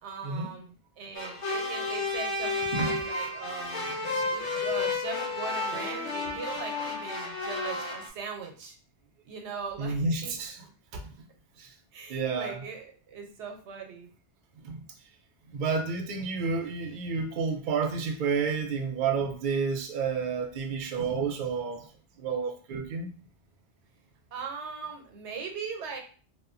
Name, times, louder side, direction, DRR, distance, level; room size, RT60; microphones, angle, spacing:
voice 1, 0.0-3.9 4.3-8.7 9.2-10.3 11.9-14.1 24.3-26.0, right 5 dB, 85° right, 3 dB, 0.9 m, -40 dB
sound 1, 1.1-8.1, left 3 dB, 85° left, 1.1 m, -32 dB
voice 2, 2.7-3.0 4.0-4.2 9.8-10.7 11.6-11.7 12.1-12.6 14.6-14.8 15.5-21.9 22.2-23.1, right 5 dB, 60° right, 3 dB, 0.6 m, -30 dB
2.8 x 2.2 x 2.4 m, 0.40 s
omnidirectional pair, 1.2 m